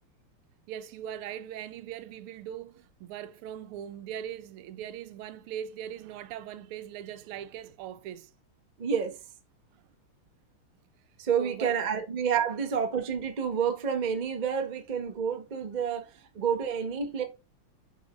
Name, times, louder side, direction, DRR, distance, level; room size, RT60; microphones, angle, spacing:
voice 1, 0.7-8.3 11.4-11.8, right 10 dB, 85° right, 1.5 m, -40 dB
voice 2, 8.8-9.2 11.2-16.1 16.3-17.2, right 7 dB, 55° right, 0.4 m, -29 dB
6.5 x 5.3 x 3.0 m
omnidirectional pair, 2.4 m